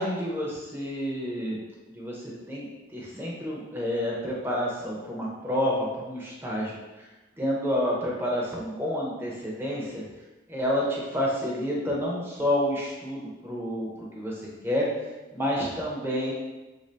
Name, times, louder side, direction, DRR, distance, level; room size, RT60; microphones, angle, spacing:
voice 1, 0.0-1.6 1.9-2.7 2.9-6.8 7.4-10.0 10.5-13.9 14.1-14.3 14.6-14.9 15.3-16.3, equal, 10° right, -4 dB, 0.6 m, -29 dB
3.5 x 2.6 x 3.2 m, 1.1 s
head